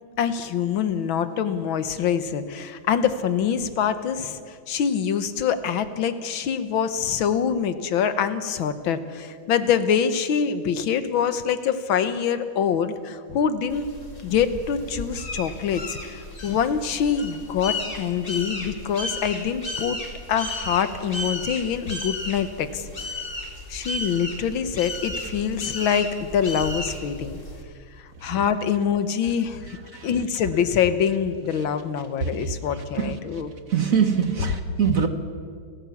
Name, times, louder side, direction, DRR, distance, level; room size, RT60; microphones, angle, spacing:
voice 1, 0.2-13.9 14.2-20.0 20.3-22.8 23.7-27.4 28.2-29.8 30.0-33.5, left 7 dB, 75° left, 1.8 m, -25 dB
sound 1, 13.7-27.6, left 2 dB, 25° left, 2.4 m, -34 dB
voice 2, 33.7-35.1, right 7 dB, 45° right, 1.4 m, -23 dB
30.0 x 14.5 x 7.2 m
omnidirectional pair, 2.2 m